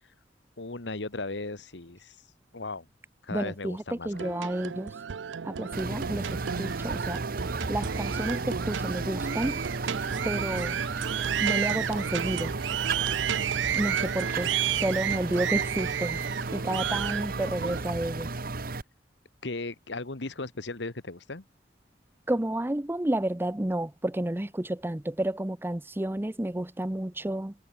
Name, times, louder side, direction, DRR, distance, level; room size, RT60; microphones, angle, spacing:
voice 1, 0.6-2.2 2.5-2.9 3.2-4.3 17.1-17.2 19.4-21.4, left 3 dB, 75° left, 1.6 m, -36 dB
voice 2, 3.3-4.9 5.4-7.2 7.7-9.6 10.2-10.8 11.4-12.6 13.7-16.2 16.5-18.3 22.3-27.5, right 1 dB, 10° right, 0.7 m, -31 dB
sound 1, 4.1-17.8, right 9 dB, 85° right, 0.5 m, -32 dB
sound 2, 5.7-18.8, right 3 dB, 55° right, 1.3 m, -34 dB
head